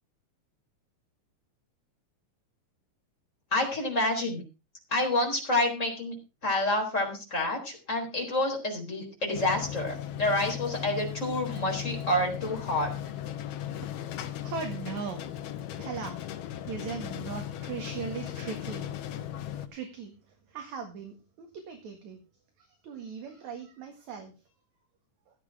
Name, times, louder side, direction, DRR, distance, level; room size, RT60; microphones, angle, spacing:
voice 1, 3.5-4.4 4.9-6.1 6.4-12.9, left 1 dB, 20° left, 1 dB, 4.0 m, -28 dB
sound 1, 9.3-19.7, left 11 dB, 80° left, 3.0 m, -37 dB
voice 2, 14.4-15.2 15.8-16.2 16.6-18.9 19.7-20.2 20.5-22.2 22.6-24.3, right 6 dB, 55° right, 4 dB, 2.9 m, -39 dB
16.5 x 8.3 x 4.8 m, 0.31 s
omnidirectional pair, 4.4 m